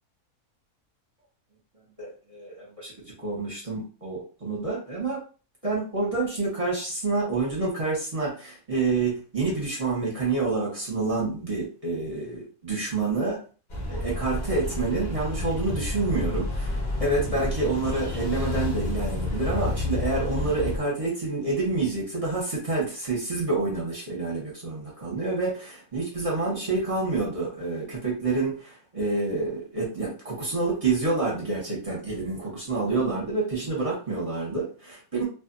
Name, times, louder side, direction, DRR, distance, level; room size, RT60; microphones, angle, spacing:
voice 1, 2.0-2.9 3.2-5.2 5.6-13.4 13.9-35.2, right 3 dB, 30° right, -5 dB, 0.8 m, -28 dB
sound 1, 13.7-20.8, left 2 dB, 45° left, 0.6 m, -30 dB
2.5 x 2.4 x 2.5 m, 0.36 s
omnidirectional pair, 1.6 m